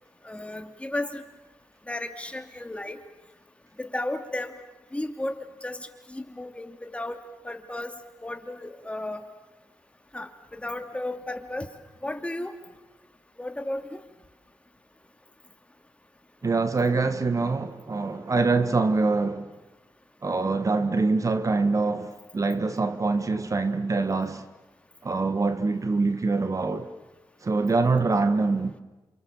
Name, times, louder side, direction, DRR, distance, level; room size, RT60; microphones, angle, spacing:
voice 1, 0.2-1.2 1.9-3.0 3.8-4.5 4.9-5.4 5.6-5.8 6.1-7.2 7.4-7.9 8.2-9.2 10.1-11.7 12.0-12.5 13.4-14.0, left 1 dB, 15° left, 2.8 m, -33 dB
voice 2, 16.4-19.5 20.2-24.4 25.0-26.9 27.4-28.8, right 3 dB, 40° right, 1.7 m, -24 dB
28.5 x 27.5 x 7.4 m
cardioid pair, 65°, 8 cm